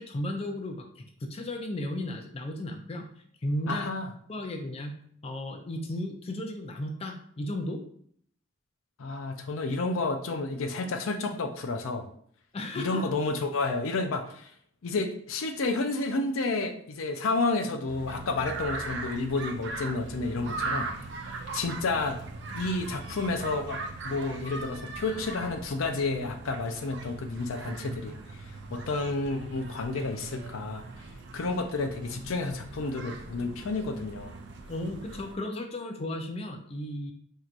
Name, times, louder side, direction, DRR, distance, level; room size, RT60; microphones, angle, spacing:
voice 1, 0.0-3.1 3.4-3.9 4.3-4.9 5.2-7.8 12.5-13.1 34.7-37.1, left 1 dB, 30° left, 3 dB, 0.4 m, -34 dB
voice 2, 3.7-4.1 9.0-12.0 12.8-14.5 14.8-20.9 21.5-22.2 22.5-30.8 31.3-34.3, left 3 dB, 90° left, 5 dB, 0.5 m, -30 dB
sound 1, 17.9-35.4, right 3 dB, 60° right, 0.5 m, -40 dB
4.5 x 2.8 x 2.5 m, 0.62 s
head